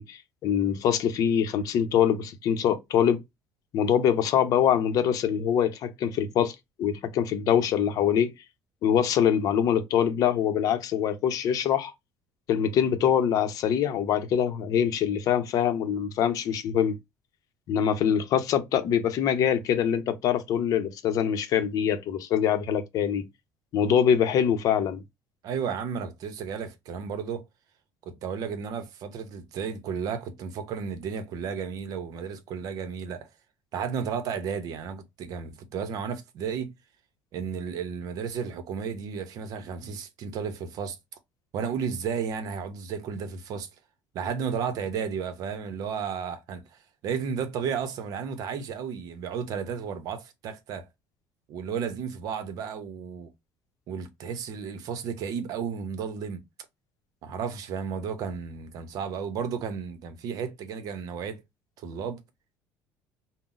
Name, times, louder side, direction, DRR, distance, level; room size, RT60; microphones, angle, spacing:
voice 1, 0.0-3.2 3.7-8.3 8.8-11.9 12.5-16.9 17.7-23.2 23.7-25.0, left 8 dB, 60° left, 0.6 m, -24 dB
voice 2, 25.4-27.5 28.0-33.3 33.7-36.7 37.3-41.0 41.5-43.7 44.1-46.6 47.0-50.8 51.5-53.3 53.9-56.4 57.2-61.4 61.8-62.2, right 6 dB, 65° right, 0.7 m, -33 dB
3.7 x 2.0 x 2.4 m
cardioid pair, 105°, 7 cm